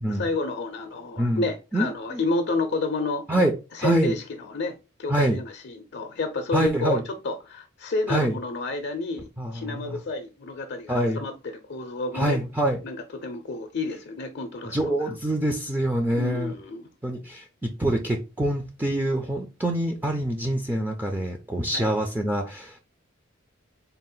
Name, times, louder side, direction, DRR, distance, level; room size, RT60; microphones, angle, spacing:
voice 1, 0.1-3.2 3.7-12.4 12.8-14.9 16.1-16.9 21.7-21.9, left 3 dB, 55° left, 0.5 m, -30 dB
voice 2, 1.2-1.5 1.7-2.2 3.3-3.5 3.8-4.1 5.1-5.4 6.5-7.0 8.1-8.4 9.4-10.0 10.9-11.2 12.1-12.8 14.7-16.5 17.0-22.8, right 1 dB, 10° right, 0.4 m, -25 dB
4.0 x 2.4 x 3.7 m
head